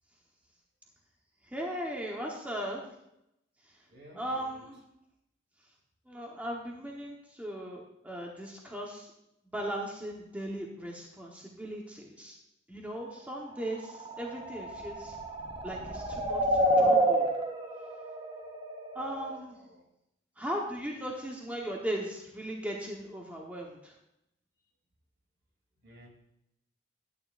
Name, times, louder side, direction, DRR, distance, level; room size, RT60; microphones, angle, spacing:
voice 1, 1.5-2.8 4.1-4.8 6.1-9.1 9.5-12.4 12.7-15.2 15.6-17.3 18.9-19.6 20.4-23.9, right 1 dB, 10° right, -2 dB, 1.1 m, -38 dB
voice 2, 3.9-4.7 19.5-19.9 25.8-26.1, equal, 75° right, -1 dB, 3.2 m, -54 dB
sound 1, 13.6-19.4, right 1 dB, 30° right, 0.8 m, -29 dB
11.0 x 9.6 x 2.6 m, 0.82 s
head